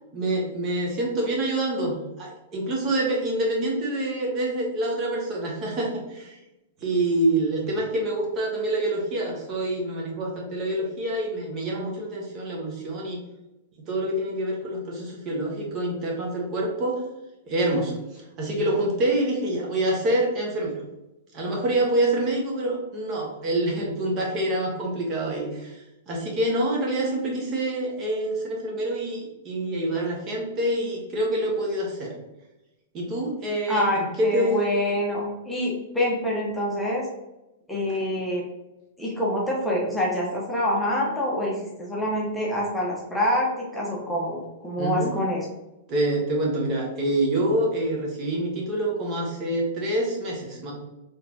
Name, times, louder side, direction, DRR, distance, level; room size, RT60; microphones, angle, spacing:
voice 1, 0.1-6.4 6.8-13.2 13.8-17.0 17.5-20.8 21.3-32.1 32.9-34.7 44.8-45.1 45.9-50.7, right 1 dB, 35° right, -2 dB, 1.3 m, -26 dB
voice 2, 33.7-37.1 37.7-38.4 39.0-45.4, left 1 dB, 5° left, -5 dB, 1.0 m, -26 dB
4.0 x 3.4 x 2.8 m, 0.97 s
figure-of-eight pair, 105°, 0 cm